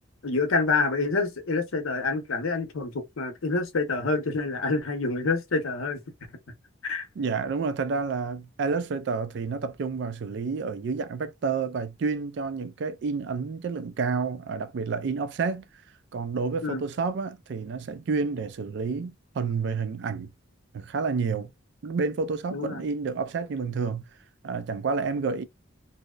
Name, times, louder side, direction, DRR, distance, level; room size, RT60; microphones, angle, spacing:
voice 1, 0.2-6.0 6.8-7.1 16.6-16.8 22.5-22.8, left 3 dB, 85° left, 0.7 m, -27 dB
voice 2, 7.2-15.6 16.1-20.3 20.7-21.5 21.8-24.0 24.4-25.4, right 4 dB, 60° right, 0.3 m, -29 dB
2.7 x 2.0 x 2.2 m
head